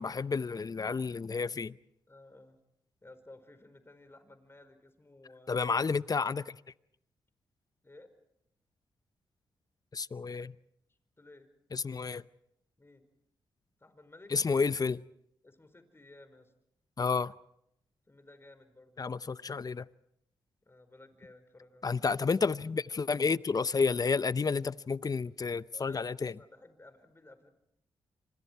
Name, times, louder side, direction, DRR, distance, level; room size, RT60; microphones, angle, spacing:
voice 1, 0.0-1.7 5.5-6.6 9.9-10.5 11.7-12.2 14.3-15.0 17.0-17.3 19.0-19.9 21.8-26.3, left 5 dB, 40° left, 0.8 m, -30 dB
voice 2, 2.1-2.6 3.0-5.6 7.8-8.1 11.2-11.5 12.8-13.1 13.8-14.3 15.4-16.5 18.1-19.1 20.6-22.0 25.7-27.5, left 2 dB, 25° left, 5.0 m, -55 dB
28.5 x 26.0 x 4.7 m
supercardioid pair, 50°, 10 cm